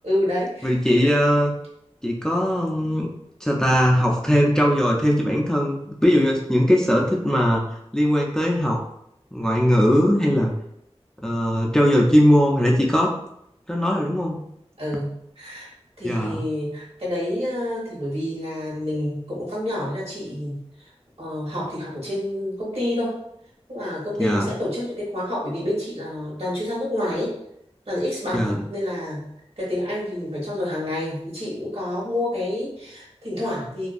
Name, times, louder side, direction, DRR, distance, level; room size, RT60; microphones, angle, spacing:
voice 1, 0.0-0.7 14.8-15.7 16.0-20.6 21.2-23.2 23.7-27.3 27.9-29.3 29.6-33.9, left 1 dB, 65° right, -6 dB, 1.1 m, -28 dB
voice 2, 0.6-1.5 2.0-3.1 3.4-7.6 7.9-8.8 9.3-10.5 11.2-13.1 13.7-14.4 16.0-16.4 24.2-24.5 28.3-28.6, equal, 5° left, -1 dB, 0.3 m, -20 dB
2.5 x 2.2 x 2.4 m, 0.76 s
wide cardioid pair, 45°, 11 cm